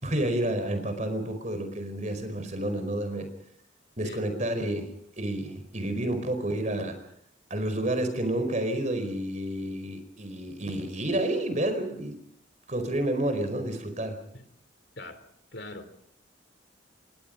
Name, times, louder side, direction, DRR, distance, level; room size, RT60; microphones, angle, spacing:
voice 1, 0.0-3.3 4.0-4.9 5.2-7.0 7.5-12.2 12.7-14.2, right 1 dB, 40° right, 8 dB, 4.7 m, -30 dB
voice 2, 15.5-16.1, left 2 dB, 60° left, 10 dB, 3.3 m, -42 dB
28.5 x 23.0 x 5.3 m, 0.69 s
head